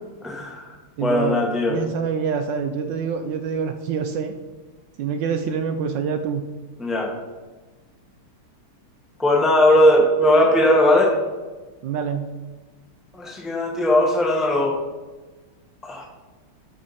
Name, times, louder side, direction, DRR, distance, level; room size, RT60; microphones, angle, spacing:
voice 1, 0.2-0.7 1.0-1.8 6.8-7.1 9.2-11.2 13.1-14.8 15.8-16.1, left 1 dB, ahead, 0 dB, 0.8 m, -18 dB
voice 2, 1.0-1.4 1.7-4.3 5.0-6.5 11.8-12.3, right 6 dB, 75° right, 6 dB, 1.1 m, -26 dB
12.0 x 4.8 x 4.1 m, 1.2 s
omnidirectional pair, 2.4 m